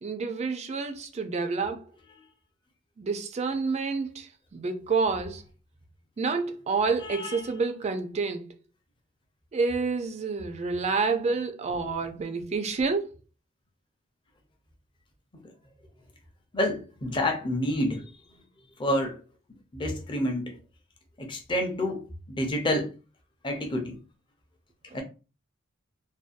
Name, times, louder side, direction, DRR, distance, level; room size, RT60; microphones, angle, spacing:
voice 1, 0.0-1.8 3.0-5.4 6.2-8.5 9.5-13.1, right 4 dB, 30° right, 0.3 m, -28 dB
voice 2, 7.0-7.5 16.5-18.1 18.8-19.2 19.7-20.6 21.2-22.0 22.3-22.9 23.4-24.0 24.9-25.0, left 1 dB, 25° left, 0.5 m, -28 dB
2.6 x 2.2 x 2.4 m
head